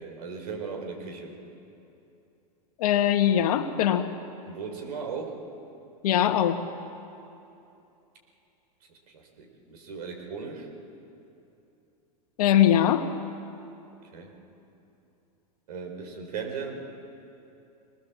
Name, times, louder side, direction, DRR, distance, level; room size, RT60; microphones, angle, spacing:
voice 1, 0.0-1.3 4.5-5.4 8.9-10.7 14.1-14.3 15.7-16.9, right 5 dB, 75° right, 3 dB, 4.9 m, -37 dB
voice 2, 2.8-4.1 6.0-6.6 12.4-13.0, left 10 dB, 70° left, 6 dB, 1.7 m, -21 dB
25.0 x 20.0 x 7.4 m, 2.8 s
hypercardioid pair, 110°, 20 cm